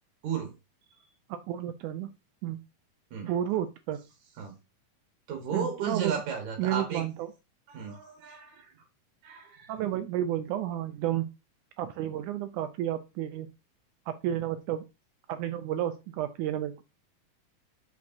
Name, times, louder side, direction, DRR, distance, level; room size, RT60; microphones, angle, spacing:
voice 1, 1.3-2.1 2.4-2.6 3.3-4.0 5.5-6.2 6.6-7.3 9.7-11.3 11.8-13.5 14.1-14.8 15.3-16.8, right 11 dB, 80° right, 10 dB, 1.8 m, -31 dB
voice 2, 5.3-7.0 7.7-8.7 9.2-9.7, right 7 dB, 65° right, 3 dB, 2.7 m, -34 dB
6.3 x 5.9 x 2.8 m, 0.26 s
omnidirectional pair, 3.9 m